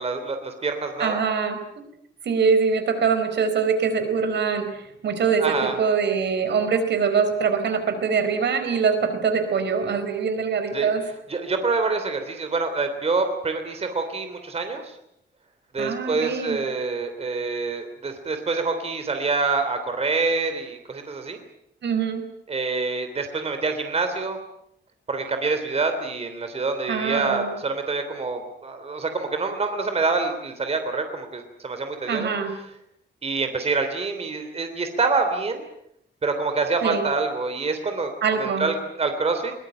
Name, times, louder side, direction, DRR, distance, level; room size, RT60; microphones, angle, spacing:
voice 1, 0.0-1.2 5.4-5.8 10.7-10.9 11.3-15.0 15.7-21.4 22.5-24.4 25.1-32.3 33.2-35.6 36.2-38.1 38.4-39.5, right 3 dB, 35° right, 7 dB, 3.2 m, -26 dB
voice 2, 1.0-1.6 2.2-11.0 15.8-16.6 21.8-22.2 26.9-27.5 32.1-32.5 36.8-37.1 38.2-38.7, right 6 dB, 75° right, 8 dB, 4.5 m, -23 dB
22.5 x 21.5 x 9.0 m, 0.76 s
wide cardioid pair, 155°, 18 cm